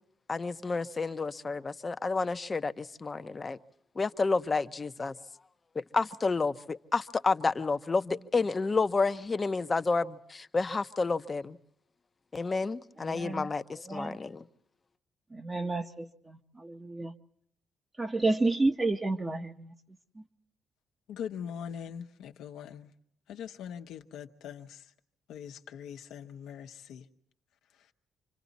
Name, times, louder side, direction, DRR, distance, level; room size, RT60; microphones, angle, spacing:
voice 1, 0.3-3.6 4.0-5.1 5.7-11.6 12.3-14.5, left 4 dB, 30° left, 0.8 m, -30 dB
voice 2, 13.0-13.5 13.9-14.2 15.3-17.1 18.0-19.7, right 2 dB, 25° right, 1.0 m, -30 dB
voice 3, 21.1-22.9 23.3-24.7 25.3-27.0, left 8 dB, 85° left, 1.0 m, -41 dB
27.5 x 25.0 x 4.1 m
cardioid pair, 90°, 0 cm